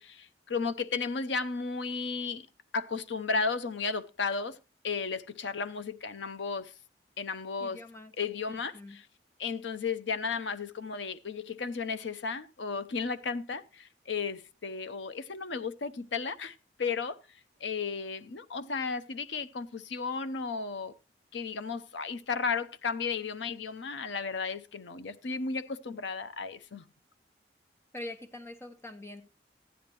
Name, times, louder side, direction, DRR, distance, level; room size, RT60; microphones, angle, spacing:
voice 1, 0.0-2.5 2.7-4.6 4.8-6.7 7.2-7.8 8.2-9.0 9.4-17.2 17.6-20.9 21.3-26.8, left 5 dB, 85° left, 0.7 m, -34 dB
voice 2, 7.6-8.1 8.5-9.0 27.9-29.2, left 1 dB, 15° left, 1.0 m, -44 dB
14.5 x 10.0 x 3.0 m
head